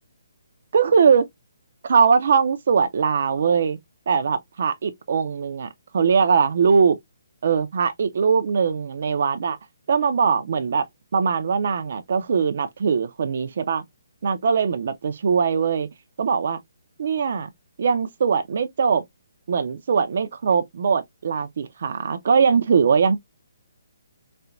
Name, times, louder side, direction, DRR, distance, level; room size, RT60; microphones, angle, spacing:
voice 1, 0.7-1.3 1.8-3.8 4.1-5.7 5.9-7.0 7.4-9.6 9.9-10.8 11.1-13.8 14.2-15.9 16.2-16.6 17.0-17.5 17.8-19.0 19.5-23.2, right 6 dB, 50° right, 0.5 m, -21 dB
4.2 x 2.1 x 2.4 m
hypercardioid pair, 175°, 0 cm